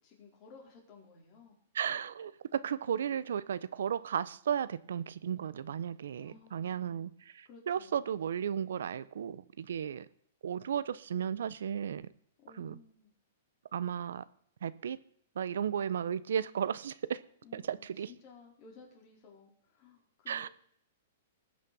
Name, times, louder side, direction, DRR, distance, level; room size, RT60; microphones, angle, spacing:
voice 1, 0.0-1.6 6.2-7.1 7.4-8.2 12.4-13.1 17.4-20.5, left 5 dB, 30° left, 4.6 m, -57 dB
voice 2, 1.7-10.1 10.4-12.1 12.6-12.8 13.7-14.2 14.6-15.0 15.4-17.2 17.5-18.1 20.3-20.5, right 8 dB, 80° right, 0.8 m, -34 dB
19.5 x 6.5 x 7.0 m
hypercardioid pair, 160°, 0 cm